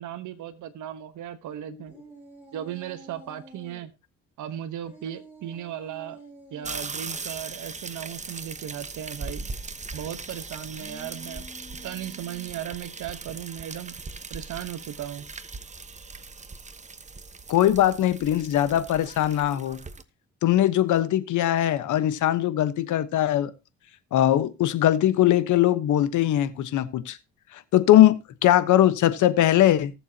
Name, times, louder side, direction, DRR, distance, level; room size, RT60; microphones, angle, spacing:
voice 1, 0.0-1.9 2.5-3.9 4.4-6.2 6.5-9.4 9.9-11.4 11.8-13.9 14.3-15.3, right 10 dB, 75° right, 1.1 m, -36 dB
sound 1, 1.9-3.8 4.8-6.8 10.6-12.8, right 2 dB, 5° right, 7.9 m, -48 dB
sound 2, 6.6-20.0, right 4 dB, 25° right, 1.0 m, -39 dB
voice 2, 17.5-19.8 20.4-23.5 24.1-27.2 27.7-29.9, left 12 dB, 75° left, 1.1 m, -21 dB
19.0 x 7.2 x 2.8 m
cardioid pair, 90°, 30 cm